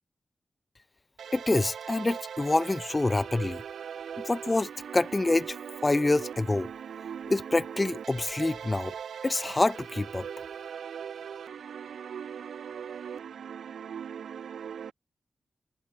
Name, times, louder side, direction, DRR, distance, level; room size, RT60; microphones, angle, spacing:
sound 1, 1.2-14.9, right 8 dB, 90° right, 4.5 m, -40 dB
voice 1, 1.3-3.6 4.2-5.6 5.8-6.7 7.3-9.0 9.2-10.3, left 2 dB, 30° left, 2.4 m, -26 dB
cardioid pair, 45°, 0 cm